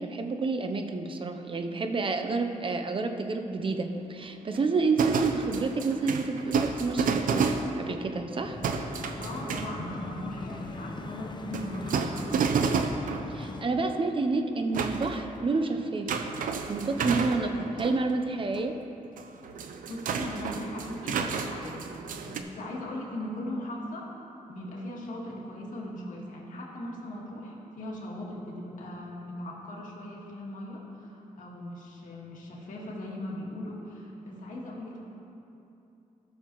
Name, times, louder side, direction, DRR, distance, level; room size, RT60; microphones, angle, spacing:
voice 1, 0.0-8.6 13.3-16.2 16.7-18.8, right 3 dB, 40° right, 5 dB, 0.7 m, -29 dB
sound 1, 3.6-3.9 4.3-8.1 8.6-10.0 11.5-13.3 14.0-15.3 16.1-18.0 18.5-18.6 19.0-22.4, right 5 dB, 75° right, 0.6 m, -31 dB
sound 2, 8.4-13.7, left 3 dB, 35° left, 0.7 m, -40 dB
voice 2, 9.2-12.5 19.9-24.1 24.5-35.0, left 1 dB, 70° left, -3 dB, 1.9 m, -39 dB
14.5 x 6.4 x 3.1 m, 2.8 s
cardioid pair, 80°, 14 cm